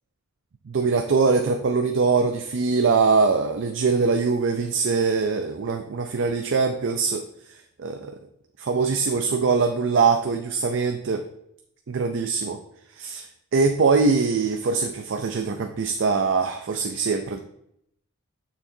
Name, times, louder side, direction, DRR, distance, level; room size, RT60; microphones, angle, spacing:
voice 1, 0.7-7.2 7.5-8.2 8.6-11.2 11.9-12.6 13.0-13.3 13.5-17.4, right 4 dB, 55° right, 5 dB, 0.4 m, -22 dB
7.0 x 5.9 x 2.7 m, 0.75 s
head